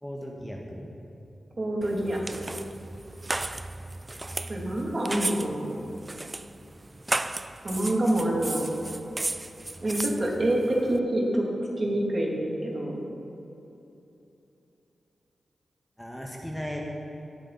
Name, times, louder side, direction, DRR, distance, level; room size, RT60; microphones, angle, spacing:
voice 1, 0.0-0.9 16.0-16.8, equal, 5° left, -1 dB, 1.5 m, -36 dB
voice 2, 1.6-2.2 4.5-5.8 7.6-8.6 9.8-11.4 11.8-13.0, right 1 dB, 45° right, -2 dB, 2.7 m, -26 dB
sound 1, 1.8-11.0, right 2 dB, 30° right, 0.5 m, -35 dB
17.0 x 8.8 x 4.2 m, 2.8 s
cardioid pair, 55°, 0 cm